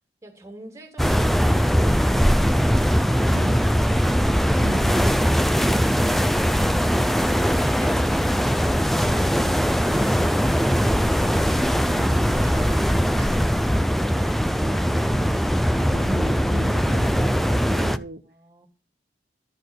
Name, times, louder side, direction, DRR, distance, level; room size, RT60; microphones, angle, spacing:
voice 1, 0.2-6.9 12.0-14.4 18.2-18.7, right 1 dB, 15° right, 2.5 m, -44 dB
sound 1, 1.0-18.0, equal, ahead, 0.5 m, -20 dB
voice 2, 4.6-5.0 11.9-12.3 14.6-15.4 15.8-18.3, right 2 dB, 60° right, 0.9 m, -39 dB
13.0 x 4.4 x 8.0 m
head